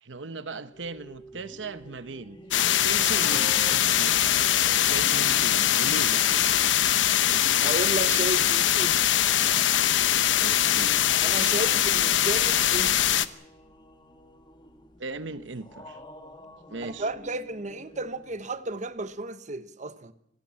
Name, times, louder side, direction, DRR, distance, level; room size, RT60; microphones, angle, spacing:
voice 1, 0.0-2.4 2.6-4.3 4.8-6.3 10.4-11.0 15.0-16.0 16.7-17.1, right 3 dB, 85° right, 1.0 m, -38 dB
sound 1, 0.7-19.3, left 1 dB, 25° left, 2.2 m, -49 dB
sound 2, 2.5-13.3, left 11 dB, 85° left, 0.9 m, -22 dB
voice 2, 7.6-9.0 11.2-13.1 16.8-20.1, right 2 dB, 40° right, 1.1 m, -33 dB
26.0 x 16.5 x 7.5 m
head